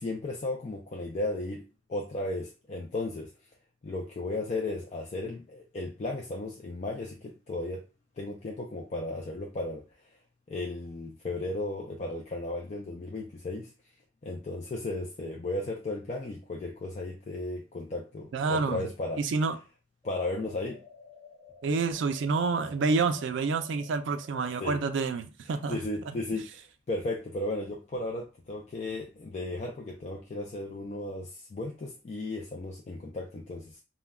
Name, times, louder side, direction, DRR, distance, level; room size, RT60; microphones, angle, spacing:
voice 1, 0.0-1.6 1.9-3.3 3.8-7.8 8.2-9.8 10.5-13.7 14.2-19.2 20.0-20.8 24.6-24.8 25.7-33.8, left 2 dB, 35° left, 0.3 m, -35 dB
voice 2, 18.3-18.8 19.2-19.6 21.6-25.8, right 4 dB, 70° right, 0.3 m, -28 dB
sound 1, 20.0-25.1, left 4 dB, 10° left, 0.8 m, -52 dB
2.2 x 2.1 x 3.4 m
head